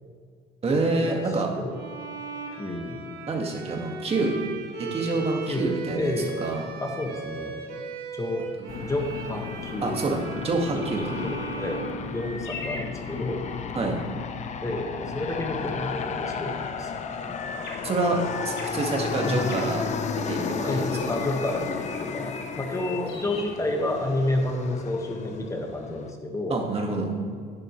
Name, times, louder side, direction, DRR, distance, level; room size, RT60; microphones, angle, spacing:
voice 1, 0.6-1.5 3.3-4.4 4.8-6.6 8.6-8.7 9.8-11.0 13.7-14.0 17.8-18.2 18.4-19.8 20.1-20.9 26.5-27.1, right 3 dB, 35° right, 1 dB, 1.9 m, -27 dB
Bowed string instrument, 1.7-12.7, right 4 dB, 65° right, 2.0 m, -38 dB
voice 2, 2.6-3.0 5.5-5.7 6.0-6.3 6.8-7.5 8.1-8.4 8.8-10.0 10.7-13.5 14.6-17.3 19.2-19.5 20.7-26.6, left 2 dB, 20° left, 2 dB, 1.6 m, -30 dB
Aircraft, 8.7-26.1, left 6 dB, 45° left, 0.8 m, -34 dB
sound 1, 12.1-13.8 17.3-20.5 20.9-24.3, left 3 dB, 85° left, 1.9 m, -41 dB
11.0 x 10.5 x 3.2 m, 2.1 s
cardioid pair, 110°, 17 cm